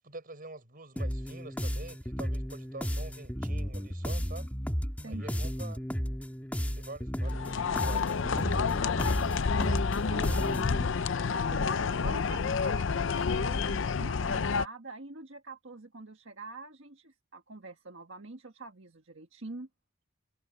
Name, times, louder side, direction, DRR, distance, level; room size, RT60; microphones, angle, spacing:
voice 1, 0.0-4.5 5.0-5.8 6.7-8.3, right 2 dB, 45° right, 5.6 m, -46 dB
sound 1, 1.0-10.9, equal, 10° left, 1.6 m, -34 dB
voice 2, 5.0-5.4 9.0-19.7, right 3 dB, 65° right, 1.7 m, -46 dB
sound 2, 7.2-14.7, left 5 dB, 65° left, 0.5 m, -29 dB
head